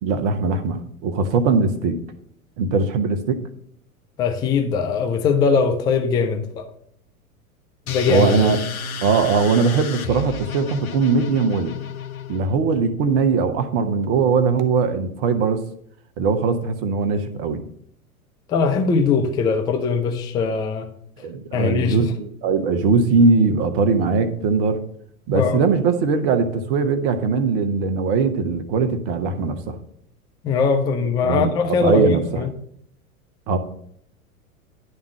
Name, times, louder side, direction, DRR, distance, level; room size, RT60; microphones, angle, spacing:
voice 1, 0.0-2.0 2.6-3.4 8.1-8.6 9.0-11.7 12.3-15.6 16.2-17.6 21.2-24.8 25.3-29.8 31.2-32.4 33.5-33.6, right 4 dB, 40° right, 1.0 m, -20 dB
voice 2, 4.2-6.7 7.9-8.4 18.5-20.9 21.5-22.0 25.3-25.6 30.4-32.5, left 5 dB, 10° left, 0.4 m, -21 dB
sound 1, 7.9-12.6, left 7 dB, 70° left, 0.8 m, -32 dB
11.0 x 3.6 x 7.2 m
figure-of-eight pair, 95°, 44 cm